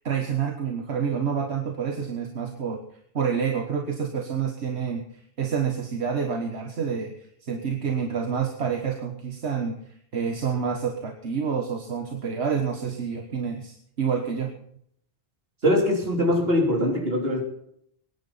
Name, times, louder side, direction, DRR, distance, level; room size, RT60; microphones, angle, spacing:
voice 1, 0.0-2.8 3.1-5.0 5.4-14.5, right 6 dB, 80° right, 4 dB, 1.7 m, -28 dB
voice 2, 15.6-17.4, left 1 dB, 65° right, 0 dB, 3.8 m, -22 dB
23.0 x 10.5 x 4.2 m, 0.69 s
omnidirectional pair, 1.1 m